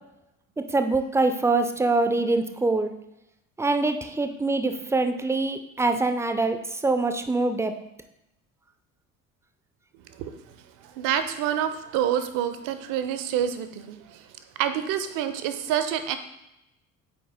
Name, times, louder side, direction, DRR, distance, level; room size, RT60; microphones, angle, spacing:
voice 1, 0.7-2.9 3.6-7.7, right 3 dB, 5° right, 8 dB, 0.6 m, -24 dB
voice 2, 11.0-14.2 14.6-16.2, right 10 dB, 50° right, 10 dB, 0.8 m, -27 dB
8.0 x 4.6 x 3.6 m, 0.89 s
figure-of-eight pair, 55°, 41 cm